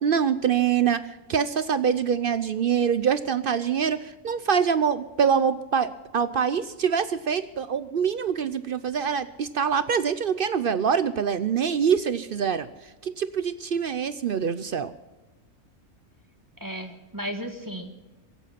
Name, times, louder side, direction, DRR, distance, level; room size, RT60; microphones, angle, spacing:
voice 1, 0.0-12.7 13.0-14.9, right 7 dB, 60° right, 13 dB, 0.5 m, -25 dB
voice 2, 16.6-18.1, equal, 15° right, 5 dB, 1.3 m, -35 dB
24.0 x 8.2 x 5.8 m, 1.1 s
omnidirectional pair, 1.5 m